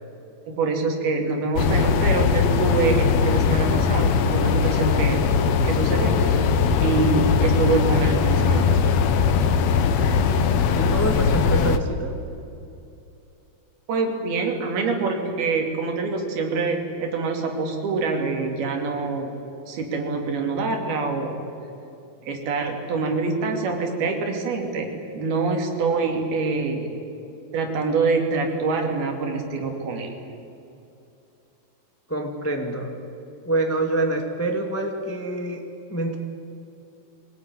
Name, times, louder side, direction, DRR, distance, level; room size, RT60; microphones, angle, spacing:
voice 1, 0.5-5.2 5.6-6.5 6.8-8.7 13.9-19.4 19.7-21.4 22.3-26.9 27.5-30.1, right 4 dB, 75° right, 3 dB, 4.5 m, -25 dB
sound 1, 1.5-11.8, left 6 dB, 70° left, 1.5 m, -20 dB
voice 2, 10.7-12.1 32.1-32.9 33.4-35.6 35.9-36.2, right 2 dB, 15° left, 3 dB, 0.6 m, -26 dB
24.0 x 18.5 x 9.7 m, 2.7 s
omnidirectional pair, 4.5 m